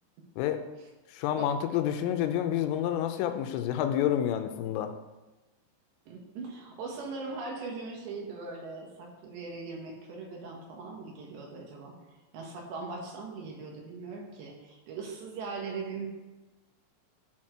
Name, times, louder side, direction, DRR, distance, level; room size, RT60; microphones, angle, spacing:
voice 1, 1.1-4.9, left 10 dB, 90° left, 7 dB, 3.2 m, -29 dB
voice 2, 6.1-11.9 12.3-16.1, right 4 dB, 70° right, 0 dB, 3.2 m, -40 dB
13.0 x 4.4 x 6.1 m, 1.1 s
omnidirectional pair, 5.8 m